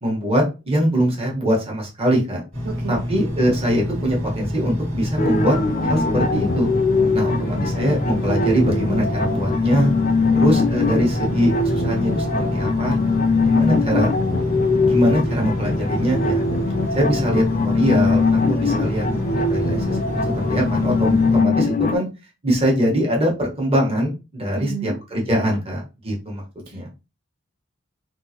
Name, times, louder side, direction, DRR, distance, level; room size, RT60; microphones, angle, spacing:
voice 1, 0.0-2.4 2.9-5.6 5.9-6.7 7.1-9.9 10.3-13.0 13.4-14.1 14.7-16.4 16.9-18.2 18.5-19.0 19.4-20.0 20.4-22.0 22.4-26.4 26.7-26.9, equal, 30° right, -2 dB, 1.2 m, -22 dB
Engine, 2.5-21.4, equal, 75° right, 1.8 m, -27 dB
voice 2, 2.6-3.1 7.3-7.7 24.5-25.0 26.7-26.9, right 6 dB, 55° right, 3 dB, 0.5 m, -32 dB
sound 1, 5.2-21.9, left 4 dB, 40° left, 0.4 m, -22 dB
3.6 x 2.5 x 2.8 m, 0.29 s
head